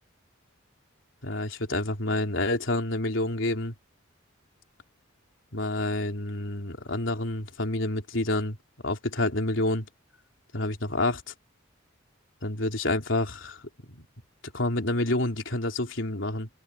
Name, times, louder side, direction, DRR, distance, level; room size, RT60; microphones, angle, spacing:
voice 1, 1.2-3.7 5.5-8.6 8.8-9.9 10.5-11.2 12.4-14.1 14.5-16.5, left 2 dB, 70° left, 3.7 m, -28 dB
head